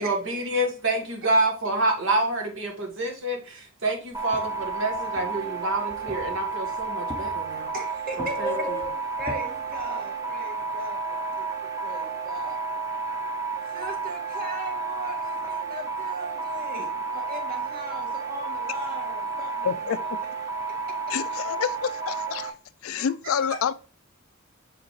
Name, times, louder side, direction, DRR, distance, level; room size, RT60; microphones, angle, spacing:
voice 1, 0.0-7.7 8.2-8.5, right 2 dB, 65° right, 1.5 m, -27 dB
sound 1, 4.1-22.5, right 4 dB, 15° right, 0.9 m, -31 dB
sound 2, 4.3-7.7 8.1-9.8, right 1 dB, 10° left, 0.6 m, -37 dB
voice 2, 7.7-8.6 9.2-12.6 13.7-19.7 23.0-23.6, right 1 dB, 45° right, 2.0 m, -38 dB
voice 3, 19.6-20.2 21.1-22.5 22.8-23.7, left 7 dB, 85° left, 0.4 m, -28 dB
6.5 x 5.0 x 3.1 m
head